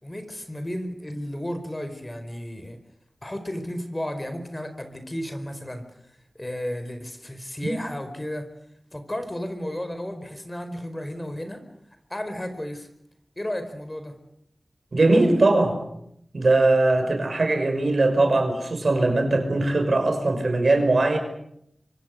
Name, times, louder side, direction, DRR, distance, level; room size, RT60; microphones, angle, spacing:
voice 1, 0.0-2.8 3.2-5.9 6.4-8.5 8.9-11.6 12.1-12.9 13.4-14.2, left 1 dB, 25° left, 8 dB, 4.7 m, -33 dB
voice 2, 14.9-15.8 16.3-21.2, right 2 dB, 65° right, 6 dB, 5.8 m, -20 dB
25.0 x 25.0 x 6.6 m, 0.73 s
cardioid pair, 45°, 0 cm